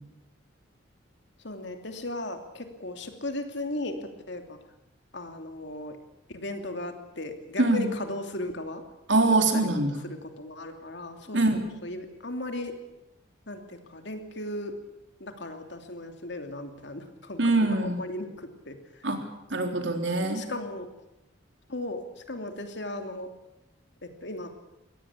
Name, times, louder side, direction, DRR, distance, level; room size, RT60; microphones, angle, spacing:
voice 1, 1.4-4.6 5.1-6.0 6.3-8.8 9.5-12.7 13.5-14.7 15.2-19.1 20.3-20.9 21.7-23.3 24.0-24.5, left 1 dB, 60° left, 6 dB, 2.9 m, -37 dB
voice 2, 9.1-9.9 11.3-11.8 17.4-18.0 19.0-19.2 19.5-20.4, right 2 dB, 65° right, 5 dB, 3.6 m, -23 dB
22.5 x 17.5 x 8.4 m, 0.90 s
head